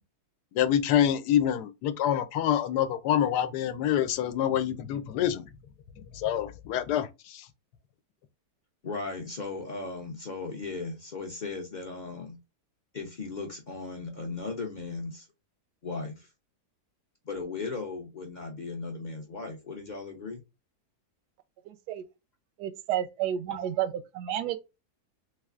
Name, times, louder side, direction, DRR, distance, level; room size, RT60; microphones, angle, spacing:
voice 1, 0.5-5.4 6.2-7.1, left 10 dB, 85° left, 1.2 m, -26 dB
voice 2, 8.8-12.4 12.9-15.3 15.8-16.3 17.2-20.4 23.5-23.6, left 3 dB, 45° left, 0.6 m, -37 dB
voice 3, 21.7-22.0 22.6-24.6, right 11 dB, 85° right, 1.2 m, -31 dB
3.4 x 3.3 x 2.4 m
omnidirectional pair, 1.7 m